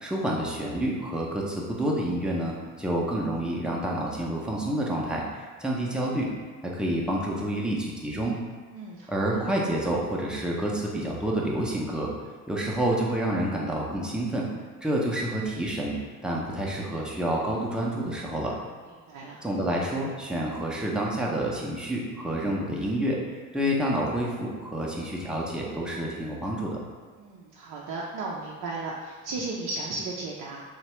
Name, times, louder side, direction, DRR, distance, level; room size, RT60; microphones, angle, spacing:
voice 1, 0.0-6.3 6.7-8.4 9.1-12.1 12.5-14.5 14.8-16.0 16.2-18.6 19.4-23.2 23.5-26.8, right 1 dB, ahead, -4 dB, 0.6 m, -28 dB
voice 2, 8.7-9.4 19.1-19.4 27.2-30.6, right 3 dB, 55° right, -4 dB, 0.6 m, -35 dB
3.0 x 2.2 x 2.9 m, 1.5 s
hypercardioid pair, 60°, 41 cm